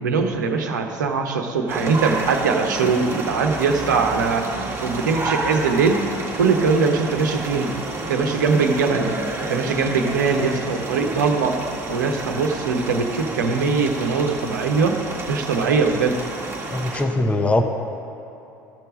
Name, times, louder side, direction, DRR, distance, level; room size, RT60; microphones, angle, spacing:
voice 1, 0.0-4.5 4.8-6.0 6.4-7.7 8.1-9.1 9.5-11.6 11.9-15.0 15.3-16.2, right 4 dB, 75° right, 4 dB, 1.0 m, -21 dB
sound 1, 1.7-17.0, right 2 dB, 25° right, 1.8 m, -30 dB
voice 2, 16.7-17.6, left 2 dB, 15° left, 5 dB, 0.9 m, -21 dB
14.0 x 6.8 x 6.2 m, 2.8 s
figure-of-eight pair, 65°, 10 cm